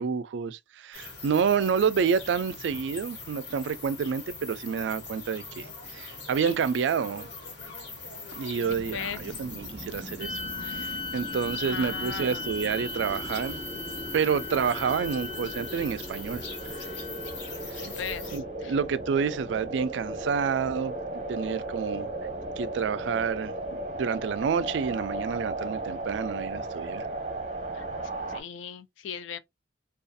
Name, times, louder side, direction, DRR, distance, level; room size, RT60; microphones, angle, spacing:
voice 1, 0.0-5.7 5.9-7.3 8.3-13.6 14.1-16.4 17.7-17.8 18.3-20.9 21.3-22.1 22.6-23.5 23.9-27.1, right 6 dB, 70° right, 0.3 m, -29 dB
sound 1, 0.9-18.4, left 3 dB, 70° left, 1.2 m, -42 dB
sound 2, 8.6-28.4, right 2 dB, 40° right, 0.7 m, -37 dB
voice 2, 8.7-9.4 11.6-12.5 17.8-18.7 27.7-27.8 28.3-29.4, left 7 dB, 90° left, 0.4 m, -38 dB
sound 3, 10.2-17.7, left 3 dB, 25° left, 0.4 m, -38 dB
2.4 x 2.3 x 2.5 m
head